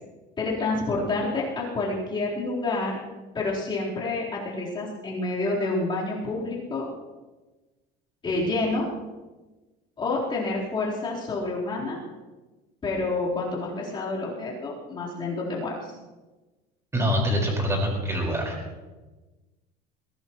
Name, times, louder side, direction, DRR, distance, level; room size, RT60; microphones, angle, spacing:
voice 1, 0.4-3.0 3.3-6.9 8.2-8.9 10.0-12.0 12.8-15.9, left 2 dB, 25° left, -6 dB, 4.2 m, -28 dB
voice 2, 16.9-18.5, equal, 15° right, -1 dB, 5.1 m, -25 dB
22.0 x 17.0 x 3.2 m, 1.2 s
cardioid pair, 145°, 20 cm